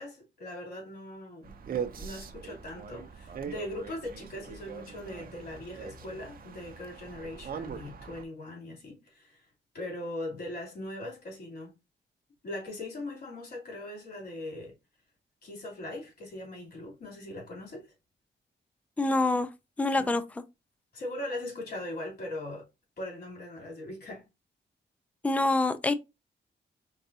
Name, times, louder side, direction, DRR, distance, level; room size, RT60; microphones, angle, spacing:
voice 1, 0.0-1.6 1.9-9.4 9.7-11.7 12.4-14.7 15.4-17.9 20.0-20.3 20.9-22.6 23.0-24.2, left 1 dB, 60° left, 3.1 m, -40 dB
sound 1, 1.4-8.2, right 7 dB, 50° right, 0.7 m, -41 dB
voice 2, 19.0-19.5 19.8-20.2 25.2-25.9, left 2 dB, 10° left, 0.4 m, -25 dB
4.7 x 3.8 x 2.7 m
wide cardioid pair, 140°, 19 cm